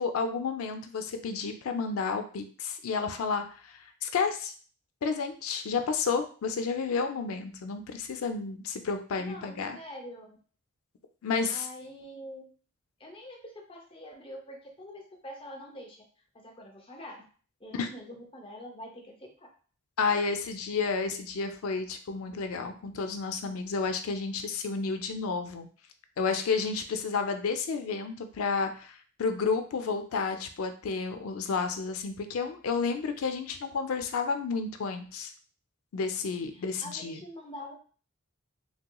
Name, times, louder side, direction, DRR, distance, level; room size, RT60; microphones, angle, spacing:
voice 1, 0.0-4.5 5.0-9.8 11.2-11.7 17.8-17.9 20.0-25.7 26.2-35.3 35.9-37.2, left 5 dB, 80° left, 7 dB, 0.4 m, -31 dB
voice 2, 9.2-10.4 11.5-12.5 13.0-16.0 16.3-17.2 17.6-19.5 36.5-37.7, left 1 dB, 25° left, 1 dB, 0.6 m, -45 dB
3.1 x 2.9 x 2.2 m, 0.40 s
head